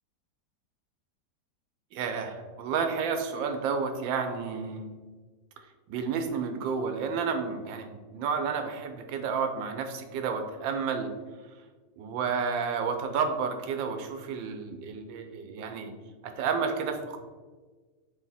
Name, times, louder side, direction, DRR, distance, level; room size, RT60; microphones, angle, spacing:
voice 1, 1.9-4.9 5.9-11.1 12.0-15.9 16.2-17.2, right 5 dB, 90° right, 6 dB, 1.4 m, -31 dB
7.0 x 3.3 x 4.2 m, 1.4 s
omnidirectional pair, 2.0 m